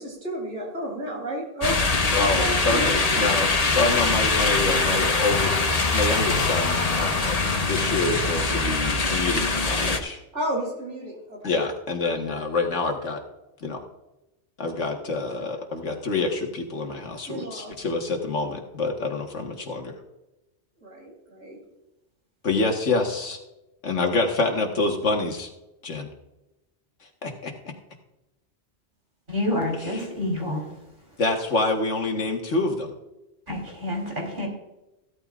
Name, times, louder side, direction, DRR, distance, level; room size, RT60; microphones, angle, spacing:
voice 1, 0.0-1.8 2.1-3.3 10.3-11.6 17.3-17.7 20.8-21.6, right 1 dB, 80° right, -1 dB, 3.9 m, -32 dB
sound 1, 1.6-10.0, left 3 dB, 35° left, 1.1 m, -23 dB
voice 2, 2.1-3.5 3.7-10.2 11.4-13.2 13.6-13.8 14.6-19.9 22.4-23.4 23.8-25.5 25.8-26.1 27.2-27.5 29.7-30.1 31.2-32.9, left 3 dB, 85° left, 2 dB, 1.9 m, -27 dB
voice 3, 29.3-30.6 33.5-34.5, left 1 dB, 45° right, -1 dB, 3.9 m, -28 dB
16.0 x 12.5 x 2.5 m, 0.97 s
omnidirectional pair, 1.2 m